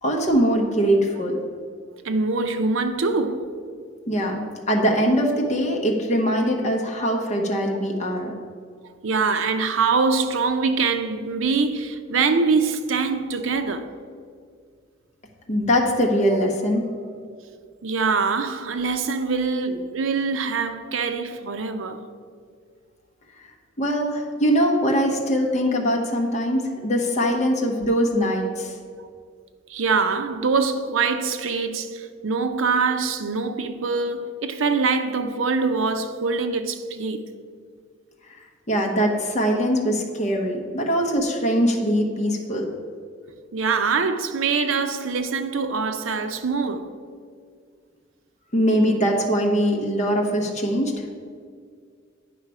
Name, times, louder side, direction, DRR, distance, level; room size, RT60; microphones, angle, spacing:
voice 1, 0.0-1.4 4.1-8.3 15.5-17.1 23.8-28.7 38.3-38.4 38.7-42.7 48.5-51.0, equal, 35° left, 1.0 m, -22 dB
voice 2, 2.0-3.5 7.0-7.1 9.0-13.9 17.8-22.1 29.7-37.3 43.5-46.9, right 4 dB, 75° right, 0.6 m, -24 dB
9.4 x 5.6 x 4.7 m
head